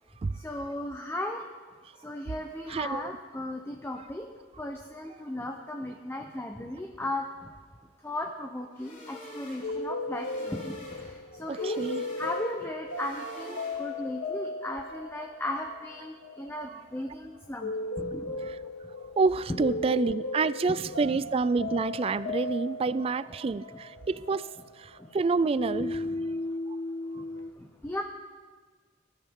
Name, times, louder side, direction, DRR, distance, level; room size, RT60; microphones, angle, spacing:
voice 1, 0.4-1.5 2.0-4.3 4.6-7.5 8.0-11.9 12.2-18.3 19.5-19.6 20.7-21.2 23.7-23.8 25.0-25.1 25.8-26.3 27.1-27.3 27.6-28.0, left 1 dB, 10° left, 2 dB, 0.7 m, -36 dB
voice 2, 2.7-3.1 11.5-12.0 16.7-16.8 18.5-18.6 19.2-24.5 24.8-26.0, right 4 dB, 30° right, 17 dB, 0.3 m, -28 dB
sound 1, 8.7-14.1, left 1 dB, 45° left, 3.8 m, -47 dB
sound 2, 9.6-25.2 25.6-27.5, left 2 dB, 85° left, 1.3 m, -36 dB
19.5 x 12.0 x 3.7 m, 1.4 s
head